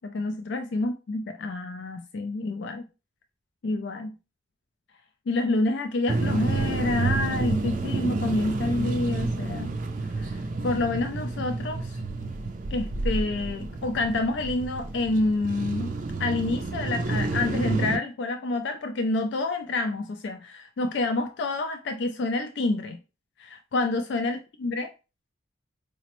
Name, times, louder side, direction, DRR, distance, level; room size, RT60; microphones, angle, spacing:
voice 1, 0.0-2.8 3.6-4.1 5.3-9.7 10.2-12.0 12.7-15.9 16.2-23.0 23.4-24.9, left 2 dB, 65° left, 0.3 m, -28 dB
sound 1, 6.1-18.0, right 3 dB, 45° right, 0.3 m, -29 dB
4.9 x 2.0 x 2.9 m
head